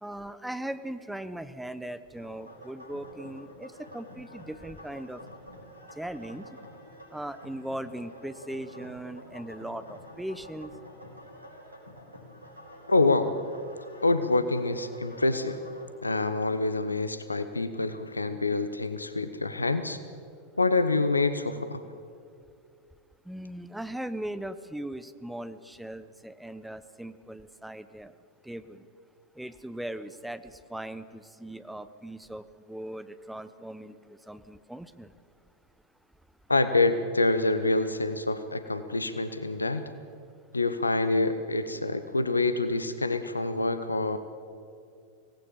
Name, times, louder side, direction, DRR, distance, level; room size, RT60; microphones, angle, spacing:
voice 1, 0.0-5.2 6.0-6.5 7.1-10.7 23.2-28.1 28.4-28.9 29.3-35.1, right 1 dB, 5° right, 13 dB, 1.0 m, -39 dB
sound 1, 2.1-15.8, equal, 85° right, 4.5 m, -48 dB
voice 2, 12.9-13.3 14.0-15.6 16.0-20.0 20.6-21.8 36.5-39.9 40.5-44.2, left 3 dB, 80° left, 11 dB, 1.0 m, -26 dB
25.0 x 18.0 x 7.7 m, 2.4 s
figure-of-eight pair, 90°, 0 cm